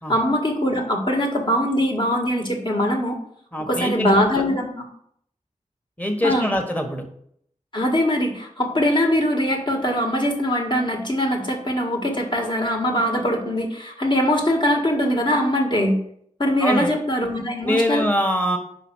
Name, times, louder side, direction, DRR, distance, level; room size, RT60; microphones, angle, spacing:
voice 1, 0.1-3.2 3.7-4.8 6.2-6.5 7.7-16.0 16.4-18.0, equal, 40° left, 1 dB, 1.7 m, -22 dB
voice 2, 3.5-4.4 6.0-7.1 16.6-17.0 17.6-18.6, equal, 10° left, 4 dB, 1.4 m, -23 dB
5.6 x 5.0 x 6.2 m, 0.67 s
wide cardioid pair, 70°, 13 cm